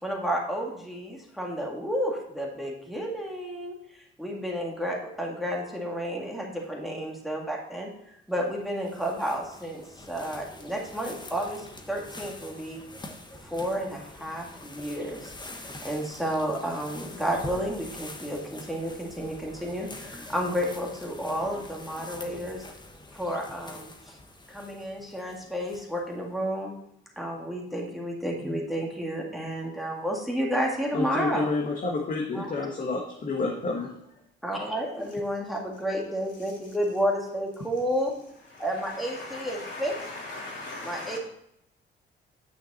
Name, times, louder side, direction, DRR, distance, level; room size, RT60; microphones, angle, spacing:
voice 1, 0.0-12.8 13.4-15.3 15.8-22.7 23.1-24.2 24.5-26.7 27.2-31.5 32.3-32.5 34.4-38.1 38.6-39.9 40.8-41.2, equal, ahead, -1 dB, 2.0 m, -31 dB
sound 1, 8.4-26.1, left 2 dB, 20° left, 1.2 m, -45 dB
voice 2, 30.9-33.9, left 3 dB, 45° left, 0 dB, 1.4 m, -29 dB
voice 3, 38.5-41.2, left 2 dB, 65° left, -3 dB, 3.1 m, -39 dB
9.4 x 5.8 x 4.2 m, 0.75 s
cardioid pair, 90°, 20 cm